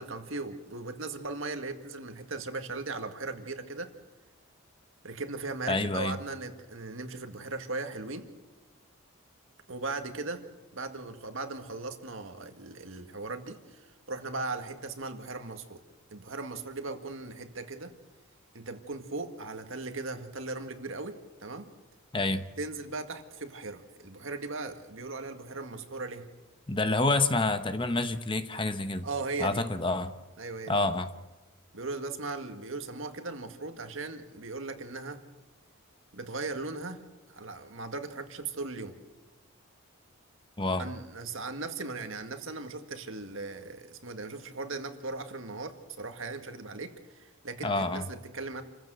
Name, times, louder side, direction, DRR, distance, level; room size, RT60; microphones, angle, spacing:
voice 1, 0.0-3.9 5.0-8.3 9.7-10.4 10.7-15.8 16.1-17.9 18.5-21.7 22.6-26.3 29.0-29.6 30.4-30.9 31.7-35.2 36.1-37.0 37.3-39.0 40.8-48.6, right 3 dB, 65° right, 6 dB, 1.9 m, -38 dB
voice 2, 5.7-6.2 22.1-22.4 26.7-29.1 29.4-30.1 30.7-31.1 40.6-40.9 47.6-48.0, left 2 dB, 25° left, 10 dB, 0.9 m, -28 dB
27.5 x 15.0 x 8.0 m, 1.1 s
head